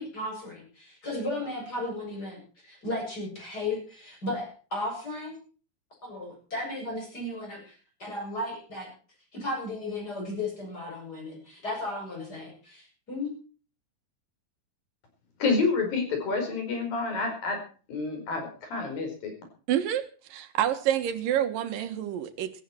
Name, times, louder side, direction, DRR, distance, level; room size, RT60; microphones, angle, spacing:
voice 1, 0.0-5.4 6.0-7.6 8.0-8.9 9.3-13.3, left 2 dB, 25° left, 0 dB, 8.2 m, -35 dB
voice 2, 15.4-17.6 17.9-19.3, left 4 dB, 85° left, 4 dB, 6.5 m, -28 dB
voice 3, 19.7-22.5, right 11 dB, 80° right, 9 dB, 3.1 m, -28 dB
17.0 x 14.5 x 4.5 m, 0.39 s
omnidirectional pair, 4.0 m